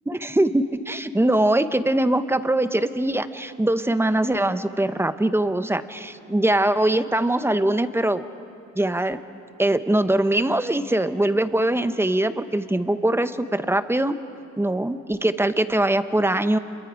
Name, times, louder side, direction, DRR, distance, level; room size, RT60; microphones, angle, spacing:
voice 1, 0.1-8.2 8.8-9.2 9.6-14.2 14.6-16.6, right 1 dB, 10° right, 11 dB, 0.8 m, -22 dB
27.5 x 22.5 x 5.0 m, 2.6 s
cardioid pair, 90°, 30 cm